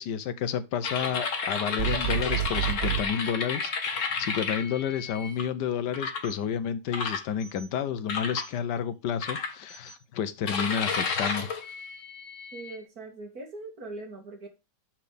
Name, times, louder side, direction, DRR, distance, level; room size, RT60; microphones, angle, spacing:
voice 1, 0.0-11.5, left 8 dB, 75° left, 1.4 m, -31 dB
sound 1, 0.8-5.4 5.9-6.3 6.9-7.6 8.1-8.5 9.2-9.9 10.5-12.8, left 5 dB, 50° left, 1.5 m, -32 dB
sound 2, 1.8-3.1, right 12 dB, 80° right, 0.6 m, -29 dB
voice 2, 12.5-14.5, right 2 dB, 55° right, 2.8 m, -41 dB
6.1 x 5.9 x 5.1 m
omnidirectional pair, 1.9 m